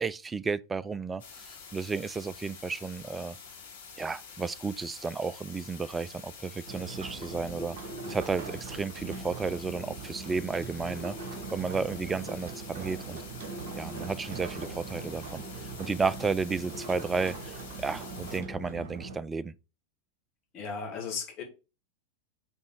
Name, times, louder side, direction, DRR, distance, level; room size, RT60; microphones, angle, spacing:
voice 1, 0.0-3.4 4.0-7.8 8.1-11.2 11.5-13.2 13.8-15.4 15.8-19.5, right 4 dB, 15° right, 0.3 m, -33 dB
sound 1, 1.2-18.4, left 6 dB, 55° left, 2.6 m, -48 dB
sound 2, 6.7-19.2, right 3 dB, 50° right, 1.5 m, -41 dB
voice 2, 20.5-21.4, left 5 dB, 30° left, 2.1 m, -36 dB
5.3 x 3.9 x 4.8 m
figure-of-eight pair, 90°, 0 cm